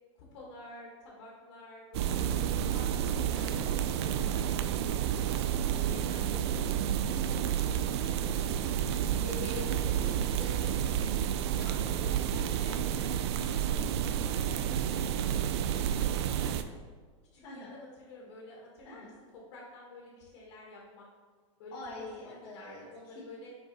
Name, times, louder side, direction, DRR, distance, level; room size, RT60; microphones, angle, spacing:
voice 1, 0.2-6.8 11.3-16.6 17.3-19.1 19.3-21.1 21.6-21.8 22.2-23.5, left 2 dB, 60° left, -3 dB, 1.4 m, -50 dB
sound 1, 1.9-16.6, right 9 dB, 55° right, 0.4 m, -30 dB
voice 2, 3.3-3.8 9.2-11.2 11.5-12.2 17.4-17.8 18.8-19.2 21.7-23.4, left 1 dB, 30° left, -8 dB, 1.1 m, -45 dB
5.3 x 4.7 x 4.0 m, 1.6 s
supercardioid pair, 160°, 16 cm